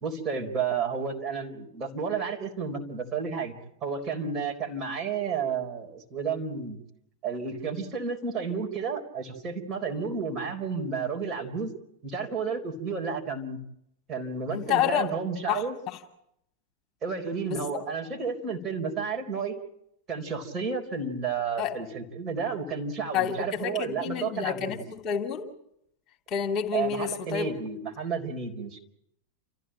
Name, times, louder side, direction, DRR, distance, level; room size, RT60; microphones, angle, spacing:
voice 1, 0.0-3.5 3.8-6.8 7.2-11.7 12.0-13.6 14.1-15.8 17.0-19.6 20.1-24.8 26.7-28.8, right 5 dB, 30° right, 1 dB, 4.3 m, -31 dB
voice 2, 14.5-15.1 15.5-15.6 17.5-17.6 21.6-21.7 23.1-23.7 24.0-25.5 26.3-27.5, left 9 dB, 30° left, 2 dB, 2.6 m, -28 dB
29.5 x 14.5 x 9.0 m, 0.78 s
figure-of-eight pair, 90°, 0 cm